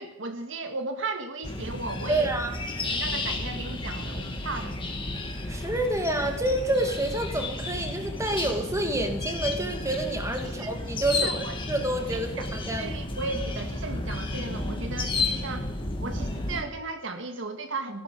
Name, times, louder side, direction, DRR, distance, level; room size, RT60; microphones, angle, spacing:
voice 1, 0.0-2.3 2.8-4.7 10.4-10.7 11.1-11.5 12.1-12.5 12.8-15.7 16.0-18.0, right 3 dB, 70° right, 6 dB, 1.9 m, -35 dB
sound 1, 1.4-16.6, left 2 dB, 25° left, 2.5 m, -32 dB
voice 2, 2.1-2.6 5.5-12.9, right 1 dB, 15° right, 5 dB, 2.3 m, -28 dB
15.0 x 13.0 x 7.1 m, 0.85 s
head